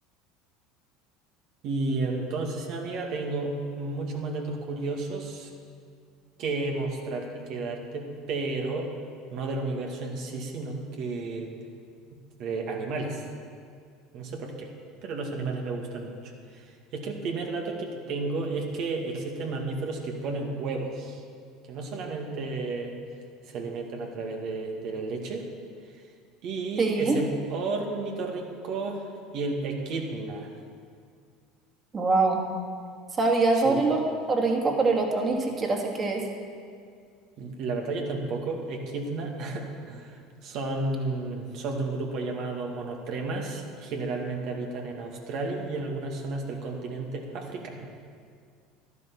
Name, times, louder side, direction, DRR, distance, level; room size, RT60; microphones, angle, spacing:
voice 1, 1.6-5.5 6.4-8.9 9.3-11.5 12.4-13.2 14.1-14.7 15.0-16.7 16.9-21.2 21.7-22.9 23.5-25.5 26.4-29.0 29.3-30.5 33.5-33.9 37.4-47.9, right 3 dB, 55° right, 1 dB, 2.2 m, -32 dB
voice 2, 26.8-27.2 31.9-32.4 33.2-36.2, right 3 dB, 30° right, 0 dB, 2.7 m, -24 dB
12.5 x 10.5 x 7.2 m, 2.2 s
hypercardioid pair, 75°, 0 cm